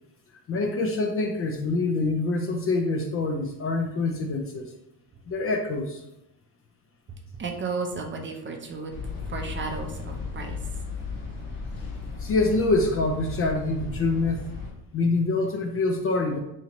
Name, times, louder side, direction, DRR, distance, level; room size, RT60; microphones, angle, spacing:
voice 1, 0.5-4.7 5.3-6.0 12.2-14.4 14.9-16.4, left 3 dB, 35° left, 3 dB, 0.4 m, -25 dB
voice 2, 7.1-8.9 9.3-10.6, right 4 dB, 30° right, 3 dB, 0.5 m, -33 dB
sound 1, 8.9-14.7, left 4 dB, 50° left, 1.0 m, -35 dB
2.9 x 2.7 x 4.2 m, 0.85 s
cardioid pair, 115°, 42 cm